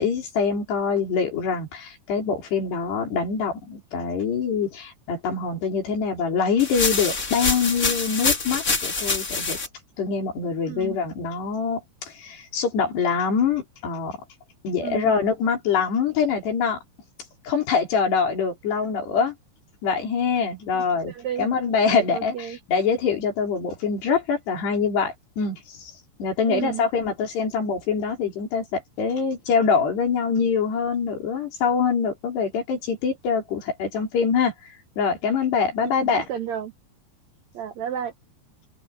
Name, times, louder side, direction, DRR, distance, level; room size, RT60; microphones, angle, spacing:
voice 1, 0.0-9.6 10.0-14.2 14.6-16.8 17.4-19.3 19.8-21.1 21.4-25.9 26.2-34.5 35.0-36.3, left 5 dB, 75° left, 6.6 m, -24 dB
sound 1, 6.6-9.7, left 3 dB, 25° left, 2.2 m, -25 dB
voice 2, 10.7-11.0 14.8-15.1 20.7-21.5 21.9-22.6 26.5-26.8 35.8-36.7 37.5-38.1, right 10 dB, 80° right, 1.6 m, -32 dB
open air
omnidirectional pair, 4.8 m